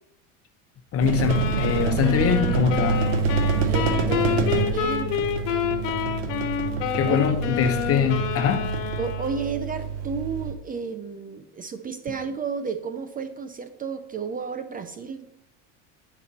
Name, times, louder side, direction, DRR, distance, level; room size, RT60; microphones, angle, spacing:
voice 1, 0.9-3.0 6.9-8.7, left 7 dB, 40° left, 1.2 m, -23 dB
sound 1, 1.0-10.5, right 5 dB, 80° right, 1.4 m, -27 dB
sound 2, 1.3-9.6, left 10 dB, 60° left, 1.4 m, -29 dB
voice 2, 3.5-5.1 7.0-7.2 9.0-15.3, right 5 dB, 25° right, 0.5 m, -32 dB
10.5 x 6.0 x 4.2 m
supercardioid pair, 125°, 36 cm